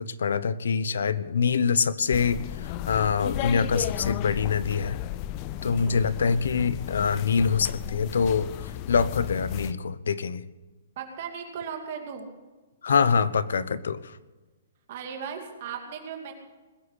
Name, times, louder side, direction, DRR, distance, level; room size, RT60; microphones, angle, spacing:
voice 1, 0.0-5.0 5.6-8.5 8.9-10.4 12.8-14.2, left 6 dB, 85° left, 17 dB, 0.9 m, -25 dB
sound 1, 2.1-9.7, left 14 dB, 30° left, 0.4 m, -34 dB
voice 2, 5.6-6.1 11.0-12.3 14.9-16.3, right 7 dB, 45° right, 3 dB, 2.6 m, -37 dB
20.5 x 8.5 x 8.2 m, 1.2 s
hypercardioid pair, 165°, 0 cm